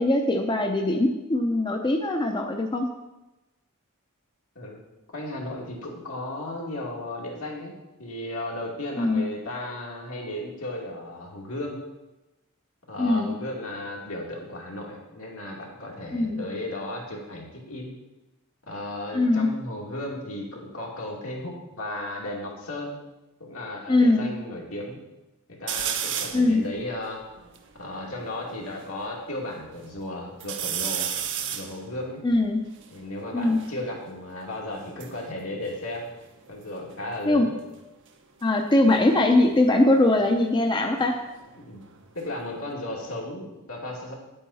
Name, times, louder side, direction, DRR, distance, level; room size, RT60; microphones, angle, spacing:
voice 1, 0.0-2.9 9.0-9.2 13.0-13.3 16.1-16.4 19.1-19.5 23.9-24.3 26.3-26.7 32.2-32.6 33.3-33.6 37.3-37.5 38.4-41.2, left 2 dB, 20° left, 3 dB, 0.6 m, -21 dB
voice 2, 5.1-11.8 12.9-17.9 18.7-23.0 23.4-25.0 25.6-27.2 27.8-31.1 31.5-32.2 32.9-36.1 36.5-37.5 41.6-41.8 42.1-44.1, left 1 dB, 80° left, -2 dB, 2.4 m, -35 dB
sound 1, 25.7-26.5 27.1-27.2 27.3-28.9 29.4-30.0 30.4-33.8 34.7-36.6 36.9-37.4 38.9-41.6 41.9-42.7, right 9 dB, 60° right, 0.8 m, -35 dB
9.4 x 8.6 x 4.2 m, 1.0 s
head